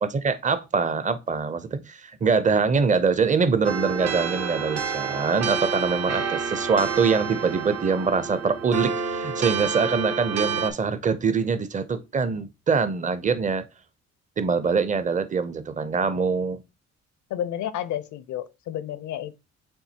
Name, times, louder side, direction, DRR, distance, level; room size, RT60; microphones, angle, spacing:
voice 1, 0.0-13.6 14.4-16.6, right 5 dB, 25° right, 0.6 m, -24 dB
sound 1, 3.6-10.7, right 6 dB, 60° right, 0.9 m, -29 dB
voice 2, 17.3-19.5, left 11 dB, 70° left, 0.6 m, -31 dB
7.1 x 2.7 x 2.8 m
cardioid pair, 90°, 30 cm